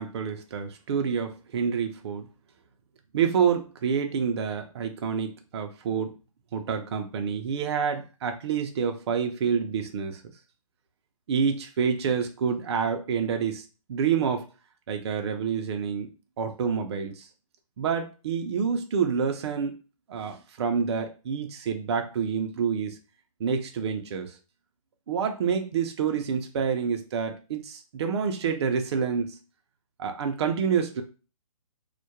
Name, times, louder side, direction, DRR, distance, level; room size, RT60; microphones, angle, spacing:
voice 1, 0.0-2.3 3.1-6.1 6.5-10.2 11.3-14.4 14.9-16.1 16.4-17.3 17.8-19.8 20.1-23.0 23.4-24.4 25.1-29.4 30.0-31.0, right 6 dB, 45° right, 5 dB, 0.4 m, -28 dB
2.2 x 2.1 x 2.7 m, 0.33 s
hypercardioid pair, 155°, 19 cm